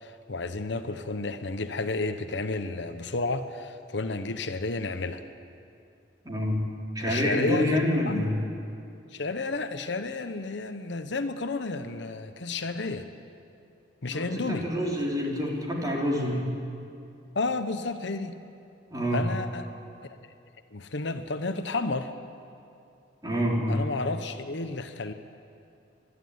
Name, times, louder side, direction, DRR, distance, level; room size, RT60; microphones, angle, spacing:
voice 1, 0.0-5.2 7.0-7.8 8.1-8.3 9.1-13.1 14.0-14.7 17.3-18.3 19.1-19.7 20.7-22.1 23.7-25.1, left 3 dB, 70° left, 9 dB, 1.0 m, -31 dB
voice 2, 6.2-6.7 7.0-8.4 14.1-16.5 18.9-19.2 23.2-23.9, equal, 20° right, -2 dB, 3.6 m, -27 dB
25.5 x 11.5 x 9.6 m, 2.5 s
head